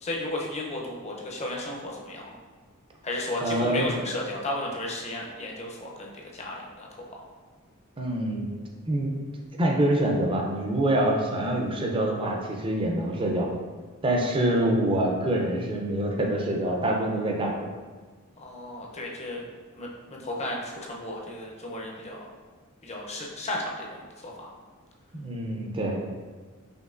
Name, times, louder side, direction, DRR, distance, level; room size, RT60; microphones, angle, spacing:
voice 1, 0.0-2.3 3.0-6.9 18.4-19.4 19.7-22.3 22.8-24.5, left 1 dB, 30° left, -1 dB, 0.6 m, -34 dB
voice 2, 3.4-3.9 8.0-8.5 8.9-9.2 9.6-13.5 14.0-17.7 25.1-26.0, right 1 dB, 25° right, 0 dB, 0.5 m, -25 dB
5.2 x 3.1 x 2.5 m, 1.4 s
head